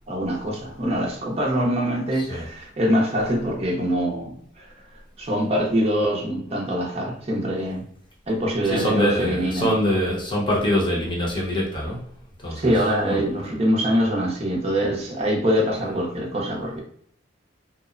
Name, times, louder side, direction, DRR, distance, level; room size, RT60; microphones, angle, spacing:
voice 1, 0.1-4.7 5.2-7.8 8.3-9.7 12.5-16.8, equal, 35° right, -2 dB, 0.6 m, -24 dB
voice 2, 8.6-12.0 12.4-12.7 13.0-13.2, equal, 25° left, -3 dB, 0.8 m, -24 dB
2.8 x 2.0 x 2.4 m, 0.62 s
head